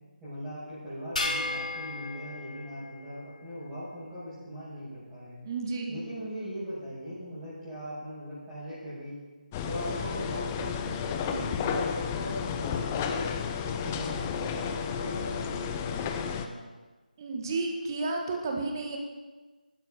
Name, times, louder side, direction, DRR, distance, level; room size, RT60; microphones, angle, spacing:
voice 1, 0.2-5.4 5.9-9.2 9.6-11.0 11.5-13.3 13.6-16.6, equal, 10° right, -16 dB, 5.7 m, -40 dB
sound 1, 1.2-3.7, left 2 dB, 55° left, 3.0 m, -35 dB
voice 2, 5.4-6.0 11.3-11.5 17.2-19.0, right 3 dB, 25° right, 1 dB, 1.7 m, -32 dB
sound 2, 9.5-16.5, left 7 dB, 15° left, 0.6 m, -32 dB
15.0 x 12.5 x 5.0 m, 1.3 s
figure-of-eight pair, 160°, 5 cm